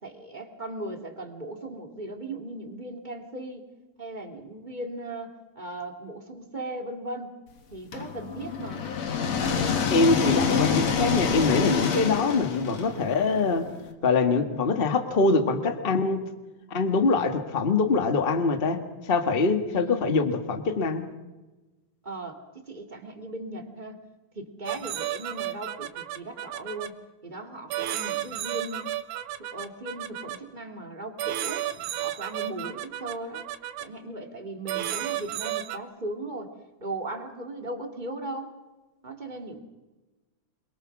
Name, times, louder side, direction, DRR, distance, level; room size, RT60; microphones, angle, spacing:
voice 1, 0.0-3.7 4.0-7.4 7.7-8.8 12.1-12.5 19.7-20.2 22.0-24.0 24.3-26.9 27.2-28.9 29.4-31.7 32.0-33.5 33.8-36.5 36.8-38.5 39.0-39.6, right 1 dB, 15° right, 4 dB, 2.6 m, -38 dB
sound 1, 7.9-13.8, left 6 dB, 60° left, 3.1 m, -27 dB
voice 2, 9.9-13.7 14.0-16.2 16.7-21.1, left 4 dB, 25° left, 8 dB, 1.4 m, -24 dB
sound 2, 24.7-26.9 27.7-30.4 31.2-33.9 34.7-35.8, right 12 dB, 85° right, 2.5 m, -32 dB
27.5 x 22.5 x 6.1 m, 1.1 s
omnidirectional pair, 3.4 m